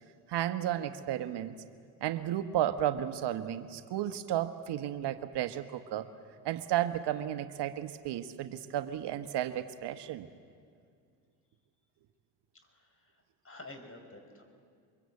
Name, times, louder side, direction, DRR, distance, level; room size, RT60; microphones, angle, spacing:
voice 1, 0.3-1.6 2.0-6.1 6.4-10.3, right 11 dB, 60° right, 9 dB, 1.2 m, -33 dB
voice 2, 12.6-14.4, left 2 dB, 30° left, 5 dB, 5.5 m, -50 dB
24.0 x 22.0 x 8.4 m, 2.2 s
supercardioid pair, 70°, 46 cm